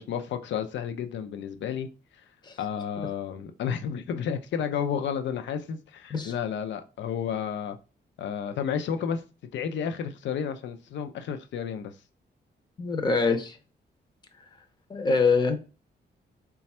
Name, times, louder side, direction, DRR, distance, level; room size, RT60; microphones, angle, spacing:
voice 1, 0.0-1.9 2.6-7.8 8.2-9.2 9.5-11.9, left 7 dB, 90° left, 0.5 m, -31 dB
voice 2, 12.8-13.6 14.9-15.6, left 4 dB, 25° left, 0.5 m, -24 dB
4.1 x 2.3 x 4.2 m
wide cardioid pair, 180°, 18 cm